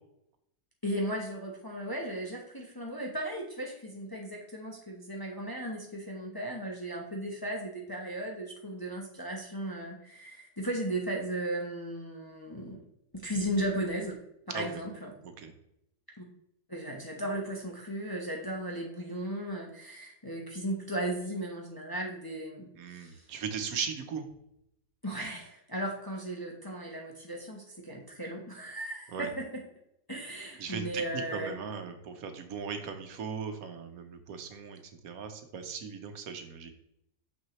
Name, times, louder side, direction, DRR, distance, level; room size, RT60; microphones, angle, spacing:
voice 1, 0.8-12.8 13.1-14.2 14.5-15.1 16.2-16.3 16.7-22.7 22.9-23.2 25.0-29.6 30.1-31.5, right 1 dB, 20° left, -1 dB, 0.7 m, -36 dB
voice 2, 14.5-14.8 15.2-15.5 22.8-24.2 29.1-29.3 30.6-36.7, right 6 dB, 80° right, 7 dB, 1.3 m, -38 dB
6.4 x 6.0 x 3.0 m, 0.79 s
omnidirectional pair, 1.5 m